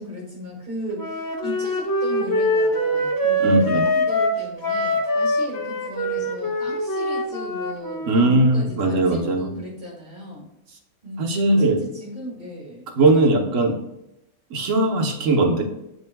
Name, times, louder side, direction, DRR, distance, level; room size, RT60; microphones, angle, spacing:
voice 1, 0.0-10.4 11.0-12.9, left 1 dB, 40° right, -5 dB, 2.3 m, -36 dB
Wind instrument woodwind instrument, 1.0-8.4, equal, 20° left, 0.6 m, -23 dB
voice 2, 3.4-3.8 8.1-9.5 11.2-11.8 13.0-13.8 14.5-15.6, right 2 dB, 80° right, 2 dB, 1.4 m, -19 dB
11.0 x 3.8 x 2.2 m, 0.87 s
omnidirectional pair, 1.3 m